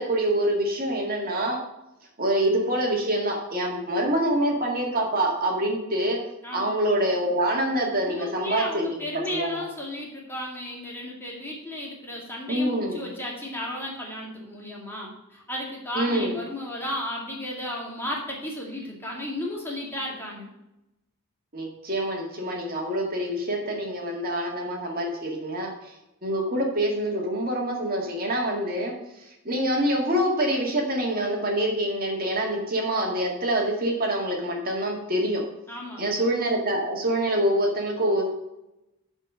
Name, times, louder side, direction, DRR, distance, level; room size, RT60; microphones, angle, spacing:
voice 1, 0.0-1.6 2.2-6.2 6.5-8.9 9.3-9.6 12.5-13.0 15.9-16.4 21.5-25.9 26.2-35.4 36.0-38.2, right 1 dB, 40° right, -1 dB, 2.0 m, -26 dB
voice 2, 6.4-6.7 8.0-20.5 35.7-36.2, left 1 dB, 10° left, -2 dB, 2.2 m, -34 dB
12.5 x 4.5 x 5.5 m, 0.92 s
head